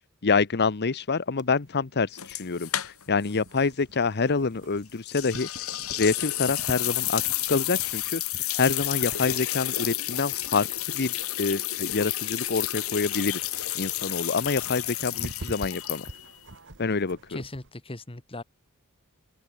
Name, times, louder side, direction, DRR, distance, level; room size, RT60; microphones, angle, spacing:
voice 1, 0.2-5.7 6.0-7.2 7.5-8.2 8.6-10.7 10.9-16.1 16.8-17.2, left 4 dB, 50° left, 0.8 m, -27 dB
sound 1, 1.4-17.7, right 1 dB, 55° right, 2.7 m, -47 dB
sound 2, 2.2-3.3 3.6-3.7 5.1-16.4, left 14 dB, 70° left, 1.8 m, -31 dB
voice 2, 17.3-18.4, left 2 dB, 25° left, 1.5 m, -38 dB
open air
head